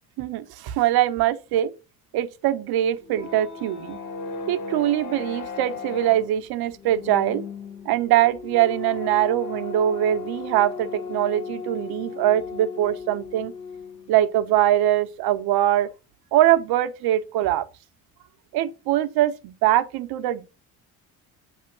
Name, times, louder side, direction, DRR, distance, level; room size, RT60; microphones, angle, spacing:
voice 1, 0.2-1.7 2.1-4.0 4.5-7.4 7.8-13.5 14.1-15.9 16.3-17.7 18.5-20.5, right 12 dB, 90° right, 1.0 m, -22 dB
sound 1, 2.9-14.1, left 5 dB, 55° left, 1.7 m, -36 dB
8.6 x 3.6 x 5.9 m
cardioid pair, 155°, 37 cm